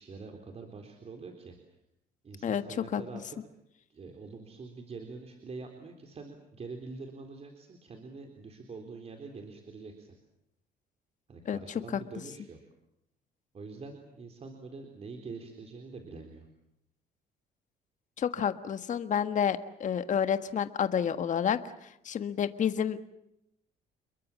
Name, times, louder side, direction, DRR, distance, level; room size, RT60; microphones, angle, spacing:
voice 1, 0.0-1.5 2.2-3.4 3.9-10.1 11.3-12.6 13.5-16.5, right 4 dB, 35° right, 4 dB, 3.9 m, -45 dB
voice 2, 18.2-21.6 22.0-23.0, left 8 dB, 45° left, 10 dB, 1.6 m, -29 dB
29.5 x 22.5 x 7.4 m, 0.81 s
cardioid pair, 110°, 17 cm